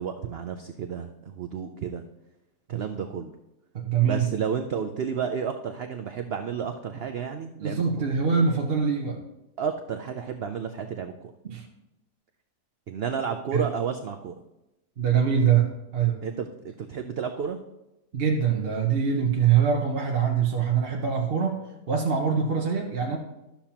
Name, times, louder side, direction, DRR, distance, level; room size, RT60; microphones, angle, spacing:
voice 1, 0.0-2.0 2.7-3.3 4.0-7.8 9.6-11.3 12.9-14.4 16.2-17.6, right 7 dB, 75° right, 6 dB, 0.5 m, -31 dB
voice 2, 3.7-4.3 7.6-9.2 11.4-11.6 13.5-13.7 15.0-15.7 15.9-16.2 18.1-21.6 21.9-23.2, right 7 dB, 45° right, -1 dB, 0.9 m, -23 dB
12.0 x 7.0 x 2.9 m, 0.94 s
omnidirectional pair, 1.7 m